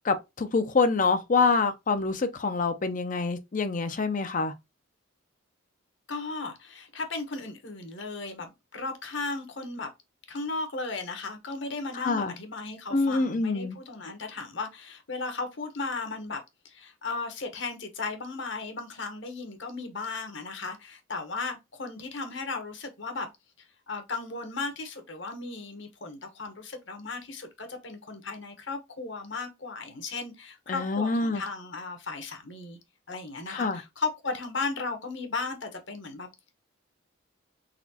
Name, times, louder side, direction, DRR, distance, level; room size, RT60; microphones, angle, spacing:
voice 1, 0.0-4.5 11.9-12.3 12.9-13.8 30.7-31.4 33.5-33.8, left 4 dB, 40° left, 0.5 m, -26 dB
voice 2, 6.1-9.9 10.3-23.3 23.9-32.8 33.1-36.3, left 3 dB, 60° left, 1.1 m, -36 dB
4.1 x 4.0 x 2.8 m
head